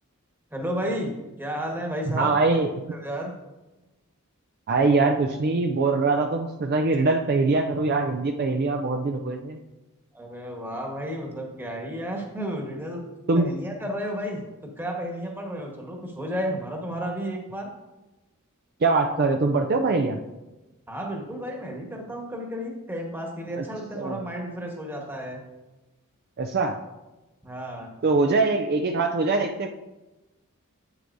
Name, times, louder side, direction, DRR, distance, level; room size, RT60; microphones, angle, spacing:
voice 1, 0.5-2.6 2.9-3.3 10.1-13.0 13.3-14.4 14.8-17.7 20.9-25.4 27.4-27.9, equal, 10° right, 0 dB, 1.3 m, -32 dB
voice 2, 2.1-2.7 4.7-9.6 13.3-13.5 18.8-20.2 23.6-23.7 23.9-24.2 26.4-26.8 28.0-29.7, right 3 dB, 45° right, 4 dB, 0.4 m, -23 dB
8.4 x 7.9 x 2.6 m, 1.1 s
head